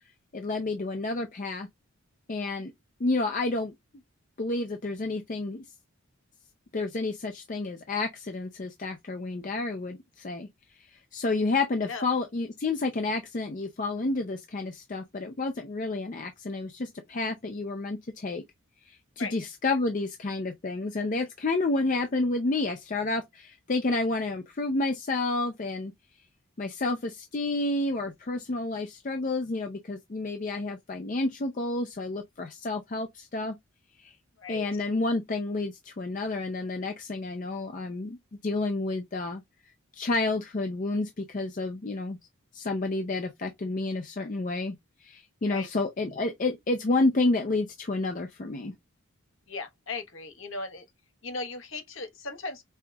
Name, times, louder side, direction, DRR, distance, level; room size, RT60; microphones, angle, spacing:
voice 1, 0.3-1.7 2.3-2.7 3.0-3.7 4.4-5.6 6.7-10.5 11.1-18.4 18.9-25.9 26.6-33.5 34.0-34.1 34.5-38.2 38.4-39.4 40.0-42.2 42.5-44.8 45.0-48.7, left 2 dB, 35° left, 0.5 m, -30 dB
voice 2, 49.5-50.8 51.2-52.6, left 3 dB, 60° left, 1.1 m, -37 dB
5.4 x 2.9 x 2.3 m
head